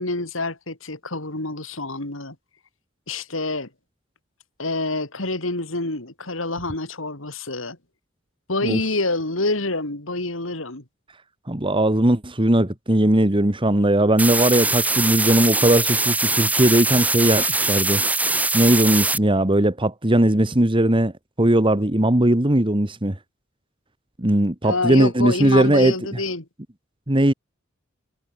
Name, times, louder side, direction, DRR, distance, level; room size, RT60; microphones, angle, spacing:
voice 1, 0.0-2.4 3.1-3.7 4.6-7.8 8.5-10.8 24.6-26.5, left 2 dB, 75° left, 3.9 m, -27 dB
voice 2, 11.5-18.0 18.5-21.1 21.4-23.2 24.2-25.9 27.1-27.3, right 1 dB, 25° right, 1.6 m, -19 dB
sound 1, 14.2-19.2, right 2 dB, 10° right, 1.7 m, -22 dB
head